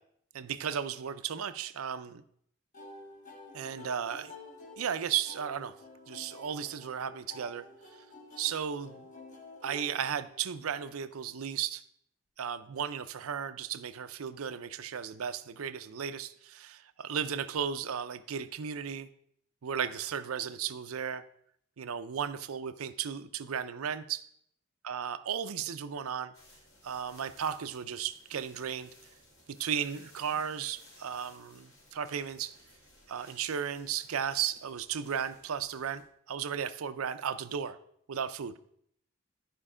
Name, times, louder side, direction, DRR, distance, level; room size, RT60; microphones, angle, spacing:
voice 1, 0.3-2.2 3.5-4.3 4.8-5.7 6.1-7.6 8.4-9.0 9.6-11.8 12.4-19.1 19.6-21.2 21.8-24.3 24.8-26.3 26.8-28.9 29.5-32.5 33.1-37.8 38.1-38.5, right 8 dB, 85° right, 12 dB, 0.5 m, -35 dB
sound 1, 2.7-10.7, left 2 dB, 35° left, 1.6 m, -50 dB
sound 2, 26.3-36.0, left 1 dB, 70° left, 3.5 m, -59 dB
11.0 x 5.2 x 4.9 m, 0.68 s
head